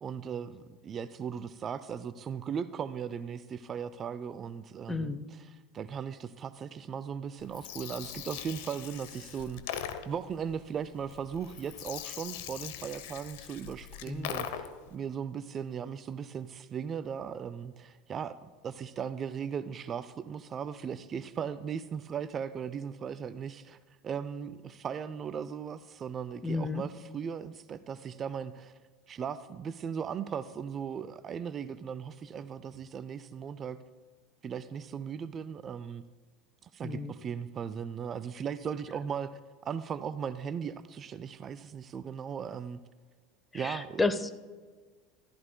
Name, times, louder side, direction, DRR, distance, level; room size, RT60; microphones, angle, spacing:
voice 1, 0.0-9.6 10.1-18.4 18.6-23.8 24.0-28.8 29.1-33.8 34.4-36.0 36.6-42.8 43.5-44.0, right 7 dB, 35° right, 14 dB, 0.4 m, -37 dB
voice 2, 4.9-5.3 14.1-14.3 26.4-26.8 36.8-37.1 43.5-44.3, left 3 dB, 15° left, 12 dB, 0.7 m, -32 dB
Gurgling, 7.4-14.9, left 10 dB, 65° left, 0.8 m, -41 dB
14.5 x 13.0 x 2.2 m, 1.4 s
hypercardioid pair, 80°, 0 cm